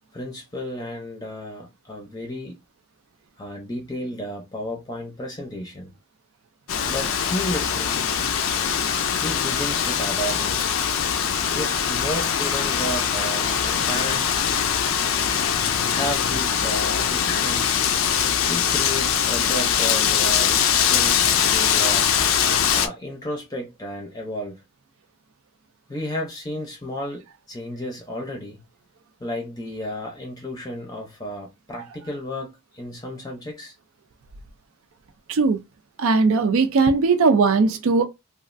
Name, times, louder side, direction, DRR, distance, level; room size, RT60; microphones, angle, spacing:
voice 1, 0.1-2.6 3.4-5.9 6.8-8.0 9.2-10.7 11.5-14.4 15.8-17.8 18.5-21.2 21.5-22.1 22.7-24.6 25.9-28.6 29.2-33.7, equal, 20° left, 0.5 m, -32 dB
Wind, 6.7-22.9, left 8 dB, 75° left, 0.4 m, -22 dB
voice 2, 35.3-35.6 36.0-38.0, right 4 dB, 80° right, 0.4 m, -18 dB
3.0 x 2.4 x 2.5 m
head